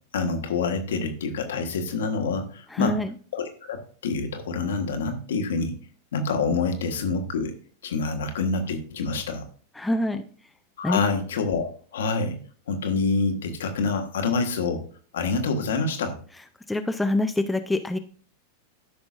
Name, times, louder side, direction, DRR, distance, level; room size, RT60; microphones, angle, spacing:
voice 1, 0.1-3.0 3.3-5.8 6.1-7.6 7.8-9.4 10.8-12.4 12.7-14.8 15.1-16.2, left 4 dB, 60° left, 5 dB, 1.3 m, -27 dB
voice 2, 2.7-3.1 9.7-10.2 10.8-11.0 16.7-18.0, left 1 dB, 5° left, 7 dB, 0.5 m, -25 dB
13.0 x 5.9 x 2.5 m, 0.42 s
figure-of-eight pair, 90°, 0 cm